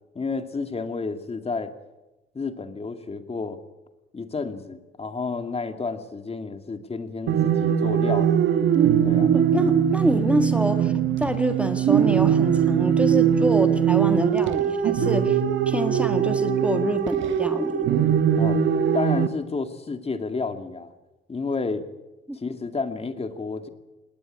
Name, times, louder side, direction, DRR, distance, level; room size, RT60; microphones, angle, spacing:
voice 1, 0.1-1.7 2.3-3.6 4.1-8.4 9.0-9.3 18.4-18.6 18.9-20.9 21.3-21.8 22.3-23.7, left 4 dB, 30° left, 7 dB, 2.4 m, -30 dB
sound 1, 7.3-19.3, right 9 dB, 75° right, 1.4 m, -21 dB
voice 2, 9.3-10.9 11.2-15.4 15.7-18.0 22.3-22.4, equal, 5° right, 7 dB, 1.6 m, -26 dB
20.0 x 19.0 x 9.9 m, 1.0 s
cardioid pair, 90°, 20 cm